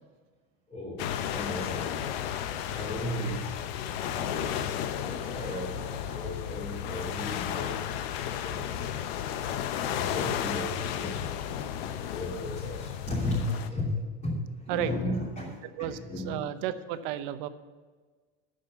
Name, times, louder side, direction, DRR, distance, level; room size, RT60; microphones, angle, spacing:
voice 1, 0.7-2.0 2.7-3.6 4.0-4.6 5.1-9.1 9.9-11.5 12.1-16.4, left 1 dB, 25° left, -8 dB, 3.1 m, -35 dB
sound 1, 1.0-13.7, left 9 dB, 80° left, 0.9 m, -33 dB
voice 2, 16.2-17.5, right 11 dB, 60° right, 11 dB, 0.8 m, -32 dB
9.6 x 6.6 x 8.8 m, 1.4 s
cardioid pair, 170°, 30 cm